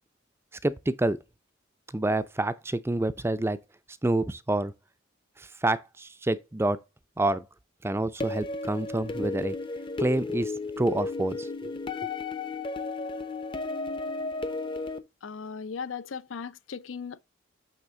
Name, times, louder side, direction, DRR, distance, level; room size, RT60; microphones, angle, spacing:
voice 1, 0.6-1.2 1.9-3.6 4.0-4.7 5.6-6.8 7.2-7.5 7.8-9.5 10.0-10.5 10.8-11.7, right 2 dB, 15° right, 0.4 m, -27 dB
sound 1, 8.2-15.0, left 3 dB, 25° left, 0.7 m, -33 dB
voice 2, 15.2-17.2, left 5 dB, 75° left, 0.5 m, -37 dB
8.8 x 3.5 x 3.7 m
head